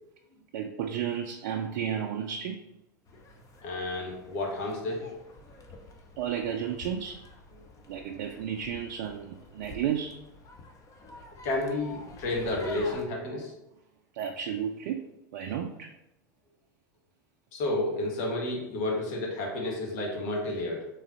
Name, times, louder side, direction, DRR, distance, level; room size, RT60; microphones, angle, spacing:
voice 1, 0.5-2.6 6.2-7.2 7.9-10.2 14.1-15.0 15.3-15.9, right 8 dB, 65° right, 3 dB, 0.4 m, -32 dB
sound 1, 3.1-13.0, left 1 dB, 35° left, 0.8 m, -48 dB
voice 2, 3.6-5.1 11.4-13.5 17.5-20.9, left 2 dB, 60° left, -1 dB, 1.4 m, -31 dB
3.8 x 3.1 x 4.1 m, 0.89 s
hypercardioid pair, 85°, 10 cm